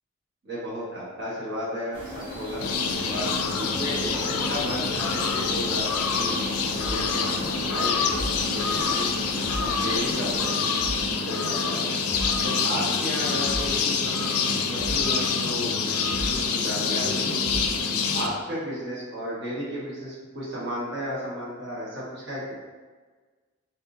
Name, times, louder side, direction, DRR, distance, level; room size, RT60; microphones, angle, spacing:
voice 1, 0.4-2.6 3.1-3.3 3.6-8.1 8.5-9.1 9.5-10.6 11.2-12.0 12.4-14.3 14.7-17.6 18.1-22.5, equal, 50° right, -7 dB, 1.3 m, -33 dB
sound 1, 1.8-18.4, left 1 dB, 20° left, 0.4 m, -40 dB
sound 2, 1.9-10.5, equal, 20° right, 1.0 m, -38 dB
sound 3, 2.6-18.3, left 5 dB, 90° left, 0.5 m, -26 dB
4.0 x 3.5 x 2.8 m, 1.4 s
head